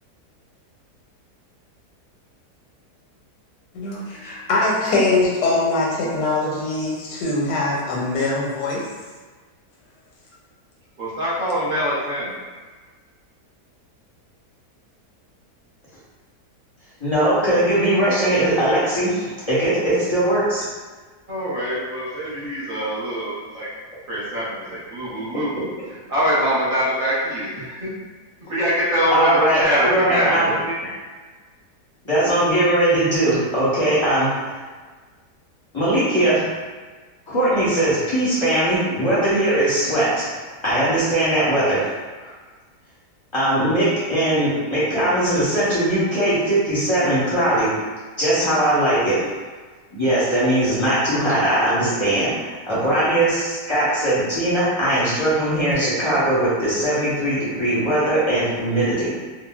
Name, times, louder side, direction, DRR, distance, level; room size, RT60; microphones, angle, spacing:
voice 1, 3.7-8.8, left 2 dB, 85° left, -4 dB, 1.2 m, -22 dB
voice 2, 11.0-12.3 21.3-23.7 24.1-25.7 26.1-27.9 28.5-29.3 29.5-30.8, equal, 45° right, -9 dB, 0.7 m, -24 dB
voice 3, 17.0-20.7 29.1-30.5 30.8-30.9 32.0-34.6 35.7-36.4 37.3-40.2 40.6-41.8 43.3-47.7 48.2-49.2 49.9-59.1, right 1 dB, 25° left, -11 dB, 0.6 m, -20 dB
3.8 x 2.1 x 2.3 m, 1.4 s
omnidirectional pair, 1.8 m